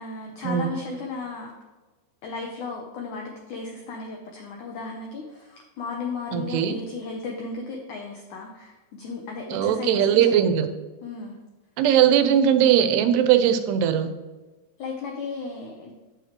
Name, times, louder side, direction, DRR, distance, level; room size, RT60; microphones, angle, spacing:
voice 1, 0.0-1.5 2.2-10.4 11.0-11.4 14.8-15.9, left 4 dB, 85° left, 1 dB, 1.7 m, -35 dB
voice 2, 6.3-6.7 9.5-10.7 11.8-14.1, right 9 dB, 90° right, 8 dB, 2.7 m, -20 dB
9.0 x 8.0 x 3.0 m, 1.2 s
omnidirectional pair, 4.7 m